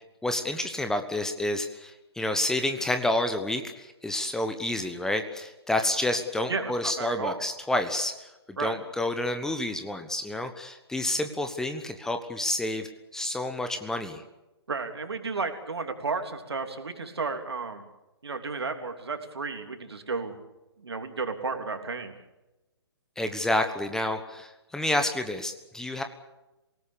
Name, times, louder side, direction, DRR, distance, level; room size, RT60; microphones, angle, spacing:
voice 1, 0.2-14.2 23.2-26.0, left 1 dB, 5° left, 7 dB, 1.2 m, -29 dB
voice 2, 6.5-7.4 8.6-8.8 14.7-17.8 18.2-20.4 20.8-22.1, right 4 dB, 70° right, 6 dB, 3.3 m, -33 dB
27.5 x 18.5 x 6.9 m, 1.0 s
figure-of-eight pair, 130°, 14 cm